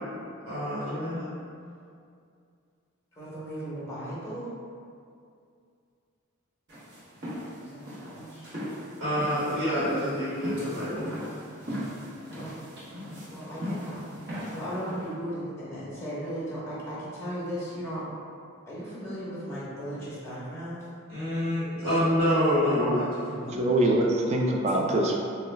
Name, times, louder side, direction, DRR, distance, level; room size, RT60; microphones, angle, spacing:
voice 1, 0.5-1.3 9.0-11.1 21.1-23.0 23.3-23.6, equal, 90° right, -12 dB, 1.2 m, -27 dB
voice 2, 3.1-4.5 7.6-7.9 8.1-8.8 12.3-12.5 13.3-14.1 14.5-18.0 18.7-20.8 24.2-24.3, equal, 15° left, -9 dB, 0.9 m, -36 dB
sound 1, 6.7-15.1, equal, 50° right, 0.9 m, -38 dB
voice 3, 23.4-25.2, right 1 dB, 30° right, 0 dB, 0.3 m, -24 dB
3.2 x 2.3 x 3.2 m, 2.3 s
head